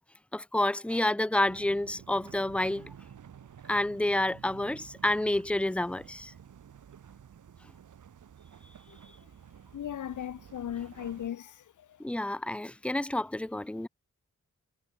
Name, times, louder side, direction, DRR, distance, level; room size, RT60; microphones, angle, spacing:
voice 1, 0.3-2.9 3.7-6.3 12.0-13.9, left 1 dB, 5° left, 0.7 m, -29 dB
sound 1, 1.4-11.3, right 8 dB, 80° right, 1.1 m, -51 dB
voice 2, 9.7-11.5, left 10 dB, 75° left, 0.6 m, -36 dB
wide cardioid pair, 145°, 30 cm